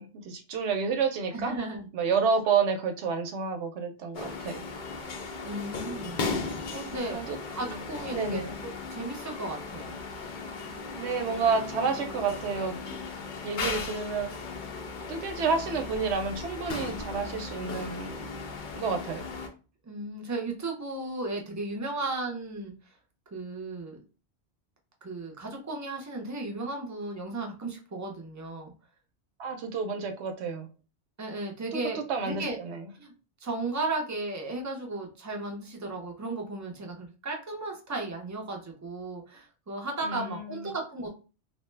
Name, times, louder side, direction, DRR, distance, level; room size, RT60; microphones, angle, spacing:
voice 1, 0.0-1.5 1.9-4.7 7.1-7.8 8.1-8.6 11.0-13.0 13.4-14.3 15.1-18.4 18.8-19.3 29.4-30.7 31.7-32.9 40.0-40.7, right 5 dB, 80° right, 6 dB, 0.9 m, -30 dB
voice 2, 1.3-1.9 5.4-6.2 6.5-7.2 7.5-10.0 19.8-22.7 23.3-24.0 25.0-28.7 31.2-32.6 33.0-33.1 33.4-41.1, right 2 dB, 25° right, 1 dB, 0.4 m, -35 dB
sound 1, 4.1-19.5, left 4 dB, 55° left, 0.6 m, -37 dB
2.8 x 2.1 x 3.2 m, 0.34 s
omnidirectional pair, 1.1 m